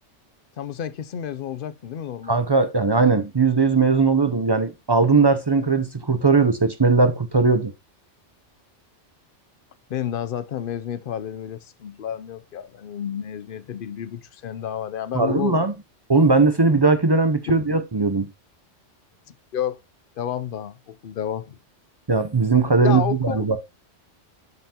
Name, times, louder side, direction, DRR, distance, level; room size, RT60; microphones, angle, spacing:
voice 1, 0.6-2.4 9.9-15.6 17.5-17.6 19.5-19.8 20.2-21.6 22.8-23.5, left 9 dB, 55° left, 0.7 m, -30 dB
voice 2, 2.3-7.7 15.1-15.7 16.1-18.3 22.1-23.6, right 4 dB, 30° right, 0.5 m, -19 dB
12.0 x 5.7 x 2.8 m
omnidirectional pair, 1.2 m